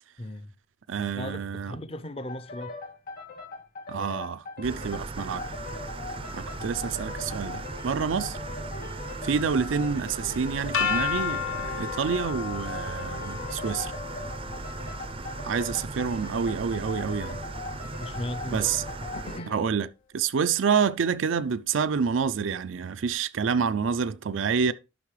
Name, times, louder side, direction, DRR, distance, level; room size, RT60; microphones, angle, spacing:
voice 1, 0.2-0.5 1.1-2.7 18.0-18.7 19.0-19.5, left 1 dB, 30° left, 0.6 m, -37 dB
voice 2, 0.9-1.8 3.9-5.4 6.3-8.4 9.2-13.9 15.4-17.4 18.5-18.8 19.5-19.9 20.1-24.7, right 6 dB, 80° right, 0.4 m, -28 dB
sound 1, 2.3-19.7, left 3 dB, 45° left, 1.6 m, -40 dB
sound 2, 4.6-19.4, right 3 dB, 30° right, 0.5 m, -38 dB
sound 3, 10.7-16.7, left 7 dB, 80° left, 0.7 m, -33 dB
12.0 x 5.5 x 3.2 m
head